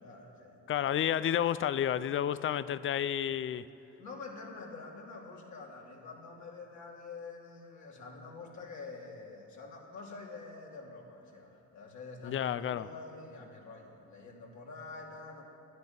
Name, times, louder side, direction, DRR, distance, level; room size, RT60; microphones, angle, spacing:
voice 1, 0.0-0.7 4.0-15.4, left 3 dB, 70° left, 2.7 m, -47 dB
voice 2, 0.7-3.6 12.2-12.9, left 10 dB, 45° left, 0.5 m, -31 dB
11.5 x 9.5 x 9.2 m
cardioid pair, 90°, 30 cm